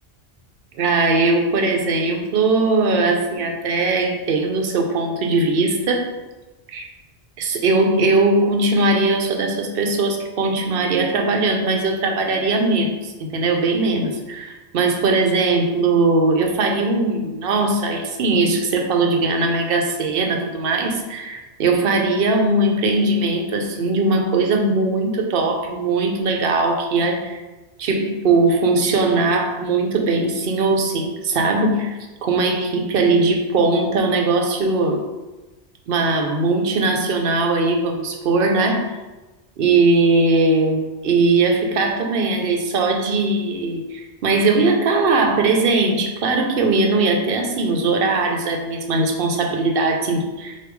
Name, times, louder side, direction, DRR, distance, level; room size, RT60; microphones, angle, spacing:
voice 1, 0.8-6.1 6.7-6.9 7.4-27.4 27.8-35.0 35.9-38.9 39.6-50.7, right 3 dB, 65° right, 3 dB, 0.8 m, -20 dB
4.5 x 2.7 x 3.5 m, 1.1 s
omnidirectional pair, 1.1 m